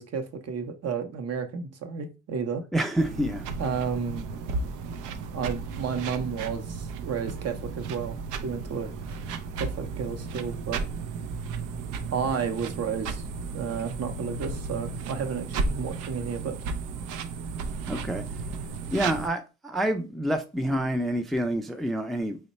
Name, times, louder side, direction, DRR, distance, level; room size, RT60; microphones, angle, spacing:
voice 1, 0.0-2.6 3.6-4.3 5.3-9.2 9.6-10.8 12.1-13.2 13.5-16.6, right 6 dB, 55° right, 0.7 m, -32 dB
voice 2, 2.7-3.4 17.9-18.2 18.9-22.4, right 1 dB, ahead, 0.4 m, -27 dB
sound 1, 3.0-19.3, right 4 dB, 90° right, 0.5 m, -34 dB
3.1 x 2.1 x 4.0 m
cardioid pair, 90°, 30 cm